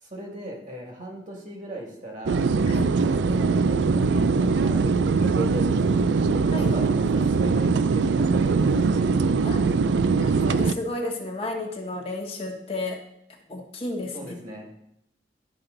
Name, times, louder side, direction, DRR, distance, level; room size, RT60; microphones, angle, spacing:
voice 1, 0.0-2.5 3.0-4.3 4.6-9.1 14.1-14.7, right 1 dB, 45° right, 0 dB, 2.0 m, -38 dB
sound 1, 2.3-10.7, right 4 dB, 80° right, 0.4 m, -22 dB
voice 2, 10.2-13.0 13.5-14.3, left 2 dB, 30° left, 1 dB, 1.0 m, -32 dB
12.0 x 5.7 x 3.9 m, 0.79 s
head